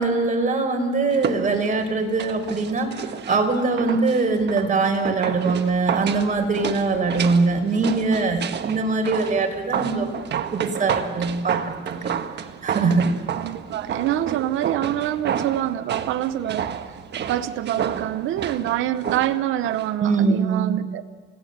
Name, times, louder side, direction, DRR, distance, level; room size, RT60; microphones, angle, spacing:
voice 1, 0.0-3.0 3.3-10.1 10.5-12.1 12.6-13.1 20.0-20.8, right 3 dB, 40° right, 4 dB, 4.7 m, -22 dB
sound 1, 1.1-19.9 20.2-20.3, right 8 dB, 60° right, 1.4 m, -31 dB
voice 2, 13.4-16.7 17.2-21.0, right 12 dB, 90° right, 11 dB, 0.8 m, -26 dB
29.5 x 17.0 x 8.0 m, 1.4 s
cardioid pair, 90°, 20 cm